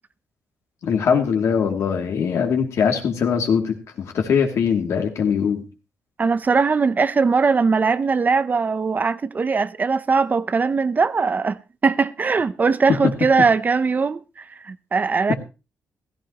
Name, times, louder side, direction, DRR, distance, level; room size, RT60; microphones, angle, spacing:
voice 1, 0.8-5.7 12.9-13.1 15.3-15.4, left 6 dB, 70° left, 2.6 m, -21 dB
voice 2, 6.2-15.3, right 4 dB, 35° right, 0.6 m, -20 dB
15.5 x 14.5 x 3.0 m
cardioid pair, 100°, 5 cm